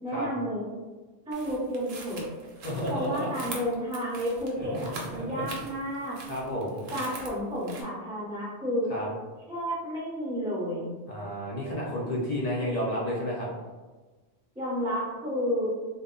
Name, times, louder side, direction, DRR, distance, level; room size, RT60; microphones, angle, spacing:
voice 1, 0.0-0.7 1.3-2.3 2.9-6.2 6.9-8.9 9.5-10.9 14.6-15.7, equal, 5° right, -6 dB, 0.4 m, -31 dB
sound 1, 1.3-7.8, right 2 dB, 65° right, 0.8 m, -43 dB
voice 2, 2.6-3.5 4.6-4.9 5.2-5.4 6.3-6.8 8.9-9.1 11.1-13.5, equal, 60° left, -5 dB, 0.4 m, -31 dB
2.0 x 2.0 x 3.6 m, 1.3 s
omnidirectional pair, 1.2 m